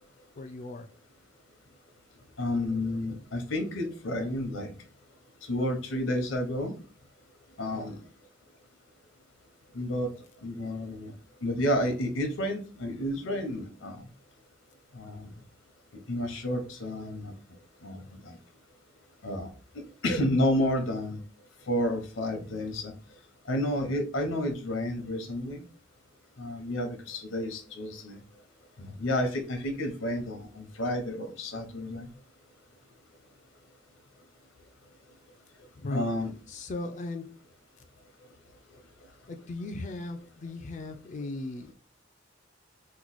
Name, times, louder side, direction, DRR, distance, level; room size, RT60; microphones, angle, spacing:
voice 1, 0.4-0.9 7.7-7.8 35.8-36.1 36.5-37.3 39.3-41.7, left 2 dB, 40° left, 5 dB, 0.3 m, -37 dB
voice 2, 2.4-4.7 5.4-6.7 7.6-8.0 9.7-10.1 10.4-11.1 11.4-14.1 14.9-15.3 16.1-17.3 17.8-18.4 19.2-19.5 19.7-21.2 21.7-22.9 23.5-25.6 26.4-28.2 28.8-32.1 35.9-36.3 38.7-38.8, left 1 dB, 85° left, 5 dB, 0.8 m, -31 dB
3.0 x 2.1 x 4.0 m, 0.38 s
head